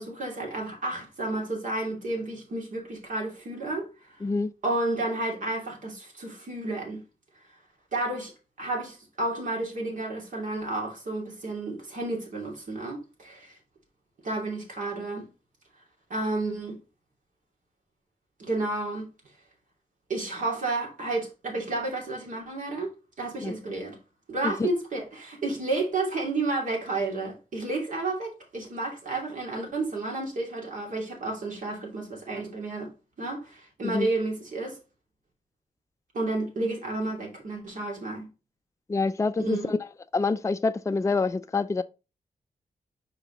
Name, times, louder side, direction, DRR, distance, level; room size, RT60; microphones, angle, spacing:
voice 1, 0.0-4.2 4.6-7.0 7.9-8.3 8.6-13.6 14.2-15.3 16.1-16.8 18.4-19.1 20.1-24.0 24.3-32.9 33.2-34.8 36.1-38.3 39.4-39.7, right 2 dB, 65° right, 2.7 m, -31 dB
voice 2, 4.2-4.5 23.4-23.5 24.4-24.7 33.8-34.1 38.9-39.8 40.1-41.8, left 3 dB, 20° left, 0.4 m, -26 dB
5.4 x 4.9 x 3.8 m
cardioid pair, 60°, 14 cm